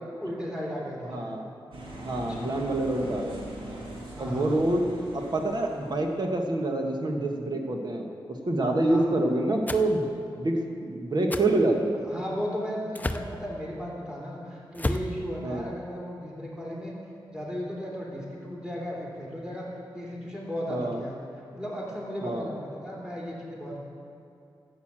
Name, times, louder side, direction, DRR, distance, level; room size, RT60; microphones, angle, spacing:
voice 1, 0.2-1.4 2.1-2.5 4.1-4.6 8.8-9.1 12.0-16.9 17.3-19.7 19.9-21.2 21.5-23.8, equal, 10° right, -4 dB, 3.3 m, -35 dB
voice 2, 1.1-1.4 2.0-3.4 4.2-4.9 5.1-10.1 10.4-12.0 15.4-15.6 20.7-21.0 22.2-22.5, right 2 dB, 55° right, 2 dB, 1.5 m, -27 dB
sound 1, 1.7-6.3, right 1 dB, 85° right, 2.3 m, -41 dB
sound 2, 9.7-9.9 11.3-11.5 12.9-13.3 14.7-15.1, left 1 dB, 20° left, 0.6 m, -30 dB
11.5 x 8.2 x 7.6 m, 2.5 s
cardioid pair, 65°, 9 cm